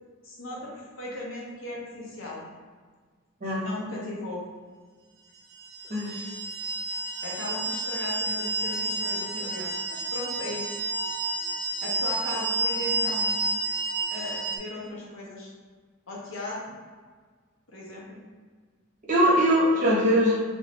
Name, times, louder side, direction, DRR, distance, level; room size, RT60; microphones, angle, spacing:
voice 1, 0.2-2.4 3.4-4.4 7.2-10.7 11.8-13.4 14.1-15.5 16.1-16.8 17.7-18.2, left 1 dB, 70° left, -4 dB, 0.8 m, -37 dB
sound 1, 5.6-14.6, right 2 dB, 70° right, 0.6 m, -30 dB
voice 2, 5.9-6.3 19.0-20.3, equal, 40° right, -7 dB, 1.0 m, -21 dB
3.1 x 2.6 x 2.9 m, 1.5 s
head